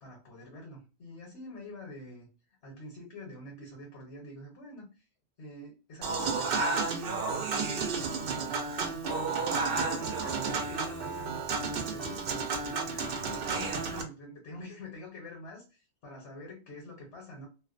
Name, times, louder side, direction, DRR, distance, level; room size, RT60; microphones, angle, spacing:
voice 1, 0.0-2.3 2.6-5.0 5.4-9.3 9.8-12.2 12.6-17.5, left 1 dB, 75° left, 1.2 m, -46 dB
Human voice / Acoustic guitar / Piano, 6.0-14.0, right 4 dB, 60° right, 0.7 m, -32 dB
2.5 x 2.1 x 2.4 m
omnidirectional pair, 1.1 m